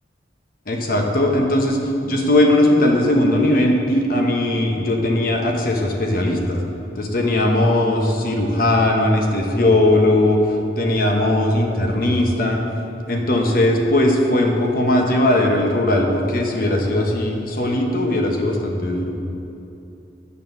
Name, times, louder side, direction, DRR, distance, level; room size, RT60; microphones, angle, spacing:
voice 1, 0.7-6.6 7.0-10.4 10.8-12.6 13.1-19.1, left 1 dB, 55° left, 1 dB, 1.0 m, -18 dB
9.0 x 4.1 x 6.6 m, 2.9 s
head